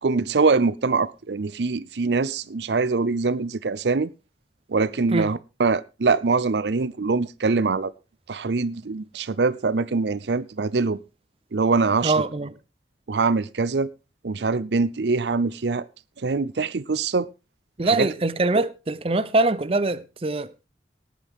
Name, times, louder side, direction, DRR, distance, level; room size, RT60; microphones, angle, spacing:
voice 1, 0.0-4.1 4.7-7.9 8.3-11.0 11.5-12.1 13.1-13.9 14.2-15.9 16.2-17.3 17.8-18.1 18.6-18.7, right 4 dB, 75° right, 0.6 m, -23 dB
voice 2, 12.0-12.5 17.8-20.7, right 2 dB, 30° right, 0.6 m, -23 dB
18.5 x 9.4 x 3.6 m
head